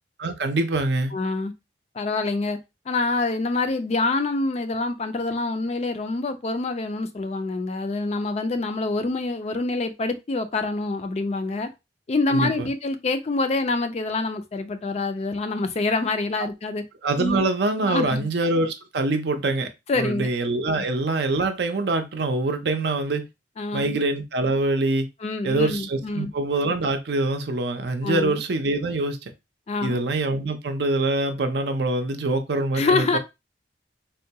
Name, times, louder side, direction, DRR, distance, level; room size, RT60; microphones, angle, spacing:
voice 1, 0.2-1.1 12.3-12.7 17.0-19.7 19.9-23.3 23.7-25.1 25.4-29.2 29.8-33.2, right 2 dB, 65° right, 0.5 m, -24 dB
voice 2, 1.1-1.5 1.9-2.6 2.9-11.7 12.1-16.8 17.2-17.4 17.9-18.3 19.9-20.3 23.6-24.0 25.2-26.3 28.0-28.4 29.7-30.0 32.7-33.2, left 3 dB, 35° left, 0.3 m, -26 dB
3.6 x 2.2 x 2.7 m
head